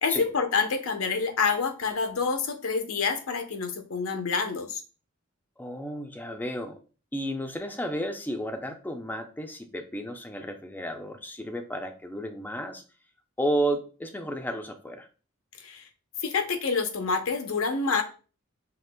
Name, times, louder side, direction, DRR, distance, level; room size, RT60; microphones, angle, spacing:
voice 1, 0.0-4.8 15.6-15.8 16.2-18.0, left 5 dB, 80° left, 6 dB, 0.7 m, -27 dB
voice 2, 5.6-6.8 7.1-12.8 13.4-15.1, right 1 dB, 10° left, 6 dB, 0.4 m, -32 dB
5.7 x 2.8 x 2.2 m, 0.36 s
head